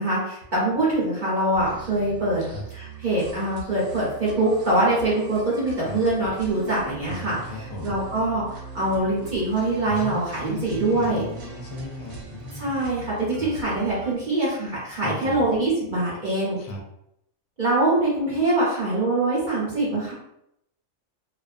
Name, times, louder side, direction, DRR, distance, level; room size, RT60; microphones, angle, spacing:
voice 1, 0.0-2.4 2.7-11.2 12.5-16.6 17.6-20.1, right 2 dB, 45° right, -7 dB, 0.8 m, -24 dB
sound 1, 1.5-14.1, right 4 dB, 80° right, 1.0 m, -41 dB
voice 2, 7.1-8.0 9.9-10.2 10.5-12.8 13.4-13.5 15.0-15.4 16.6-16.8, left 2 dB, 75° left, 0 dB, 0.9 m, -37 dB
2.4 x 2.2 x 2.4 m, 0.78 s
omnidirectional pair, 1.4 m